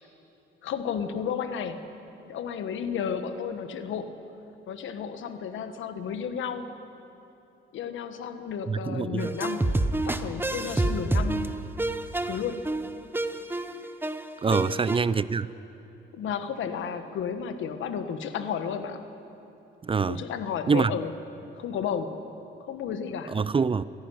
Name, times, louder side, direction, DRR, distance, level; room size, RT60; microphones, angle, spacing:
voice 1, 0.6-1.9 2.3-4.2 4.7-6.7 7.7-9.7 10.0-11.5 12.2-12.7 14.5-14.6 16.1-19.1 20.1-21.1 21.5-22.2 22.7-23.4, left 7 dB, 75° left, 9 dB, 1.5 m, -32 dB
voice 2, 8.7-9.3 14.4-15.5 19.8-20.2 20.7-20.9 23.3-23.8, right 5 dB, 25° right, 18 dB, 0.5 m, -25 dB
sound 1, 9.2-15.0, right 2 dB, 10° right, 1.0 m, -28 dB
27.0 x 11.5 x 9.9 m, 2.9 s
cardioid pair, 90°, 20 cm